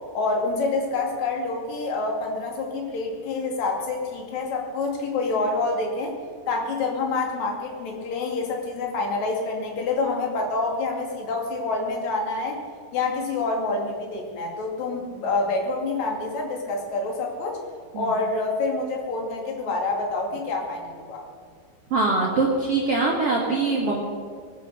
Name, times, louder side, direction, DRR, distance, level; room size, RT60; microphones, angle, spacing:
voice 1, 0.1-6.1 6.5-12.6 12.9-17.6 18.0-21.2, left 3 dB, 45° left, 1 dB, 2.9 m, -27 dB
voice 2, 21.9-24.0, right 3 dB, 85° right, -4 dB, 1.3 m, -23 dB
21.0 x 9.4 x 6.8 m, 2.1 s
omnidirectional pair, 5.8 m